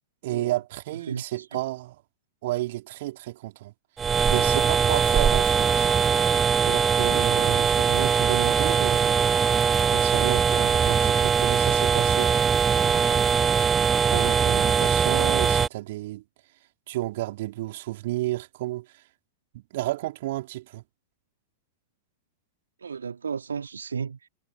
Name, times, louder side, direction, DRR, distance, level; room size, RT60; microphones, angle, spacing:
voice 1, 0.2-2.0 2.4-3.7 4.3-5.9 6.6-9.4 9.9-13.2 14.1-16.2 16.9-19.0 19.5-20.8, right 17 dB, 55° right, 4.2 m, -32 dB
voice 2, 0.9-1.6 7.7-7.8 22.8-24.3, right 6 dB, 75° right, 3.2 m, -34 dB
sound 1, 4.0-15.7, right 6 dB, 20° right, 0.3 m, -21 dB
figure-of-eight pair, 95°, 0 cm